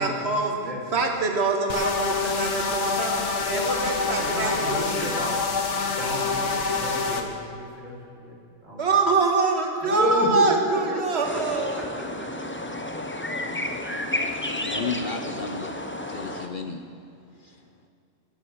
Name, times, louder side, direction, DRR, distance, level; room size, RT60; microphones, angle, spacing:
voice 1, 0.0-0.6 0.9-5.4 8.8-11.9, right 3 dB, 55° right, 2 dB, 1.8 m, -25 dB
sound 1, 1.7-7.2, left 4 dB, 60° left, 1.5 m, -26 dB
voice 2, 4.2-5.3 6.0-8.8 9.8-11.0, equal, 75° right, -4 dB, 3.5 m, -30 dB
sound 2, 11.2-16.5, left 1 dB, 10° left, 0.6 m, -31 dB
voice 3, 14.6-15.7 16.1-16.8 17.4-17.6, left 4 dB, 45° left, 6 dB, 0.8 m, -33 dB
22.0 x 7.4 x 6.4 m, 2.5 s
omnidirectional pair, 1.4 m